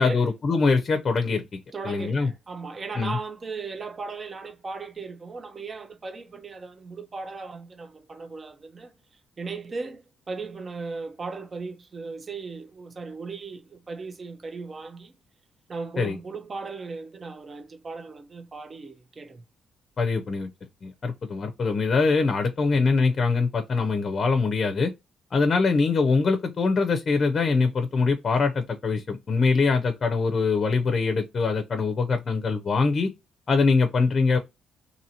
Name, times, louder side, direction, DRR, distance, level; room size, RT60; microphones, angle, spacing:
voice 1, 0.0-1.4 1.8-2.3 3.0-3.2 16.0-16.2 20.0-20.5 20.8-24.9 25.3-33.1 33.5-34.4, left 4 dB, 45° left, 0.5 m, -23 dB
voice 2, 1.7-15.1 15.7-19.4, right 4 dB, 35° right, 0.5 m, -37 dB
2.8 x 2.7 x 2.7 m
cardioid pair, 90°, 0 cm